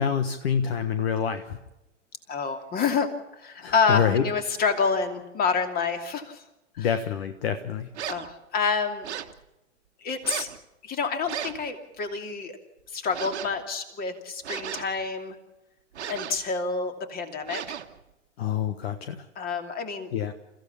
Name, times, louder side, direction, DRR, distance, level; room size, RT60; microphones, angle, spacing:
voice 1, 0.0-1.6 3.6-4.2 6.8-7.9 18.4-19.3 20.1-20.3, left 8 dB, 55° left, 9 dB, 1.4 m, -26 dB
voice 2, 2.3-6.4 6.8-6.9 8.1-9.1 10.0-10.5 10.8-12.6 12.9-15.4 16.1-17.8 19.4-20.1, left 5 dB, 25° left, 6 dB, 2.9 m, -28 dB
sound 1, 7.9-8.3 9.0-9.4 10.2-10.6 11.3-11.7 13.1-13.6 14.4-15.1 15.9-16.5 17.5-18.0, right 9 dB, 60° right, 1.5 m, -35 dB
29.0 x 15.5 x 7.1 m, 0.98 s
figure-of-eight pair, 105°, 37 cm